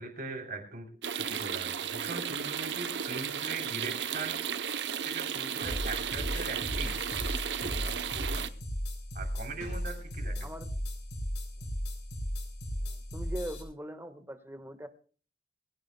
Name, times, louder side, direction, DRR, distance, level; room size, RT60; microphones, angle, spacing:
voice 1, 0.0-4.4 5.0-7.0 7.6-8.5 9.2-10.5, right 3 dB, 55° right, 1 dB, 3.4 m, -41 dB
sound 1, 1.0-8.5, right 8 dB, 80° right, 0.8 m, -34 dB
sound 2, 5.6-13.6, equal, 80° left, 6.5 m, -36 dB
voice 2, 12.8-14.9, right 1 dB, 15° right, 9 dB, 1.4 m, -41 dB
22.0 x 16.5 x 2.2 m, 0.40 s
head